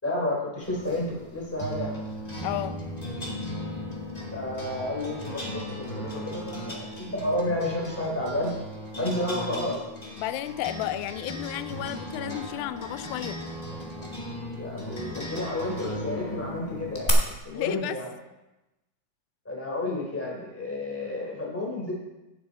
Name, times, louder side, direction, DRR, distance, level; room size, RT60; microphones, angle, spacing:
voice 1, 0.0-1.9 4.3-8.5 9.0-9.8 14.5-18.1 19.4-21.9, left 1 dB, 5° left, -3 dB, 2.8 m, -31 dB
sound 1, 0.6-17.1, equal, 25° left, 0.8 m, -37 dB
voice 2, 2.4-2.8 10.2-13.4 17.5-18.0, left 13 dB, 90° left, 12 dB, 2.4 m, -32 dB
16.5 x 7.6 x 4.1 m, 1.0 s
omnidirectional pair, 4.1 m